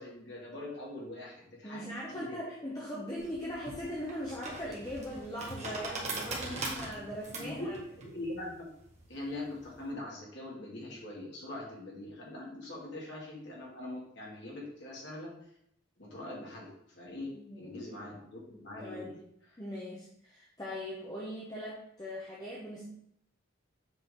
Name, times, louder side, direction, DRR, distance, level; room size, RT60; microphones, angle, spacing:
voice 1, 0.0-1.9 2.1-2.4 7.4-7.7 8.0-8.7 9.1-15.3 16.0-19.1, left 1 dB, 55° left, -3 dB, 2.3 m, -42 dB
voice 2, 1.6-7.8 17.3-17.8 18.8-19.2 19.6-22.8, equal, 20° left, -4 dB, 1.0 m, -40 dB
sound 1, 3.2-9.8, right 3 dB, 35° right, 1.5 m, -41 dB
7.5 x 4.9 x 3.7 m, 0.72 s
head